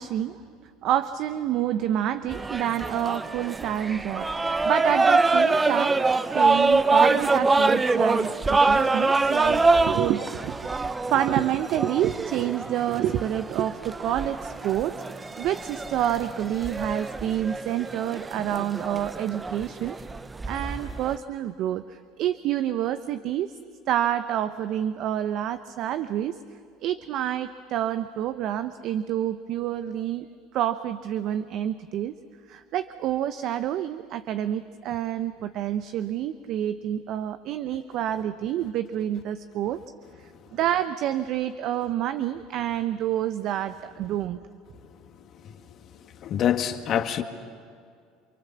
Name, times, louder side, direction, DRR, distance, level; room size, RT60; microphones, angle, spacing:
voice 1, 0.0-6.0 6.3-10.5 10.8-20.0 20.5-23.5 23.9-26.4 26.8-30.3 30.5-32.1 32.5-39.8 40.5-44.4, right 11 dB, 60° right, 11 dB, 0.9 m, -28 dB
sound 1, 2.3-21.2, right 3 dB, 20° right, 0.9 m, -25 dB
voice 2, 45.3-45.8 46.2-47.2, left 9 dB, 50° left, 7 dB, 1.9 m, -26 dB
29.5 x 24.0 x 7.4 m, 2.2 s
supercardioid pair, 85°, 0 cm